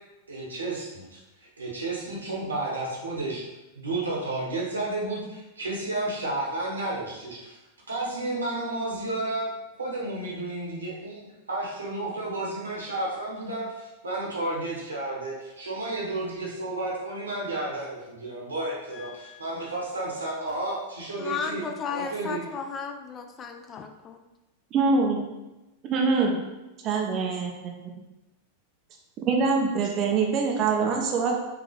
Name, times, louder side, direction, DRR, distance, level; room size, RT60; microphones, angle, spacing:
voice 1, 0.3-1.2 1.6-3.5 3.7-7.6 7.9-9.5 9.8-21.6 21.9-22.4, right 2 dB, 75° right, -4 dB, 1.4 m, -32 dB
voice 2, 18.9-19.7 21.2-24.2, left 6 dB, 25° left, 5 dB, 0.4 m, -35 dB
voice 3, 24.7-25.2 25.9-26.4 26.8-27.5 29.2-31.3, right 4 dB, 35° right, 0 dB, 0.7 m, -24 dB
5.1 x 2.9 x 3.4 m, 1.0 s
figure-of-eight pair, 90°, 0 cm